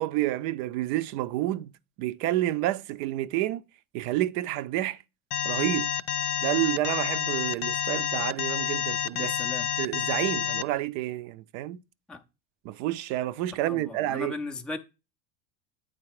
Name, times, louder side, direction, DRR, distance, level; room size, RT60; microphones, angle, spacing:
voice 1, 0.0-1.7 2.0-3.6 3.9-5.0 5.4-5.9 6.4-9.3 9.8-11.8 12.6-14.4, right 15 dB, 55° right, 0.5 m, -29 dB
Alarm, 5.3-10.6, left 10 dB, 60° left, 0.6 m, -29 dB
voice 2, 9.1-9.7 12.1-12.2 13.7-14.8, left 3 dB, ahead, 0.3 m, -36 dB
8.8 x 4.0 x 4.7 m
supercardioid pair, 120°, 47 cm